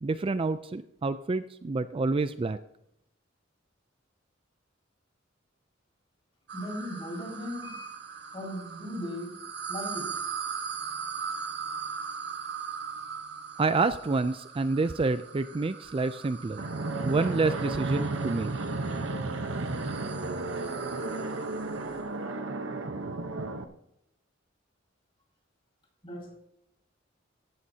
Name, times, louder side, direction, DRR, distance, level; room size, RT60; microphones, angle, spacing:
voice 1, 0.0-2.6 13.6-16.6 17.0-18.5, right 3 dB, 30° right, 12 dB, 0.4 m, -28 dB
voice 2, 6.5-7.9 8.3-9.4 9.7-10.2 26.0-26.3, left 1 dB, 30° left, -1 dB, 5.5 m, -37 dB
sound 1, 6.5-22.1, right 6 dB, 60° right, 1.5 m, -40 dB
Fixed-wing aircraft airplane, 16.6-23.6, right 2 dB, 80° right, 1.0 m, -33 dB
17.0 x 14.0 x 2.8 m, 0.80 s
head